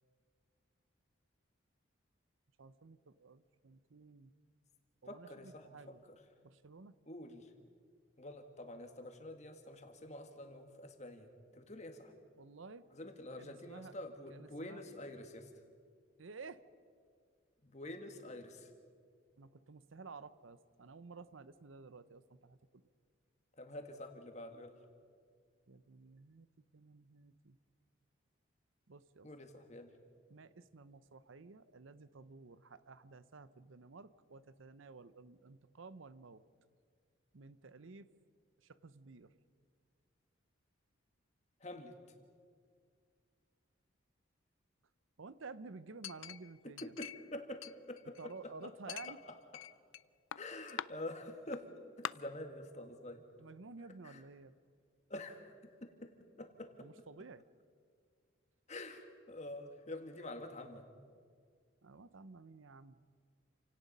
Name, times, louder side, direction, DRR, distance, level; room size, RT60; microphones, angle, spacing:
voice 1, 2.6-4.3 5.0-6.0 6.4-6.9 12.4-12.9 13.4-13.9 14.3-14.8 16.2-16.6 19.4-22.8 25.7-26.5 26.7-27.6 28.9-29.3 30.3-36.4 37.3-38.1 38.6-39.3 45.2-46.9 48.2-49.2 53.4-54.5 56.8-57.4 61.8-63.0, right 4 dB, 75° right, 15 dB, 0.7 m, -53 dB
voice 2, 5.1-6.0 7.1-7.5 8.2-12.1 12.9-15.5 17.6-18.7 23.6-24.8 29.2-29.9 41.6-42.0 46.6-48.5 48.9-49.4 50.4-51.7 52.0-53.2 54.0-54.2 55.1-56.1 56.4-56.9 58.7-60.9, left 1 dB, 35° left, 5 dB, 1.8 m, -47 dB
Chink clink, 46.0-47.3 47.6-48.4 48.9-50.0 50.3-50.9 51.5-51.6 52.0-52.1, left 9 dB, 75° left, 0.4 m, -44 dB
29.0 x 17.5 x 5.5 m, 2.1 s
head